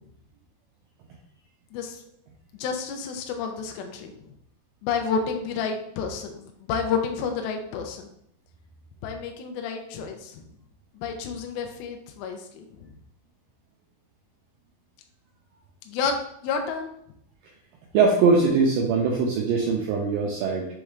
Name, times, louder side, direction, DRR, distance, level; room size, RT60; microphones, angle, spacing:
voice 1, 1.7-2.0 2.6-4.1 4.8-8.1 9.0-10.4 10.9-12.9 15.9-16.2 16.4-16.9, left 6 dB, 80° left, 4 dB, 2.3 m, -30 dB
voice 2, 17.9-20.7, right 4 dB, 80° right, -1 dB, 2.0 m, -21 dB
6.1 x 3.2 x 2.4 m, 0.73 s
omnidirectional pair, 4.5 m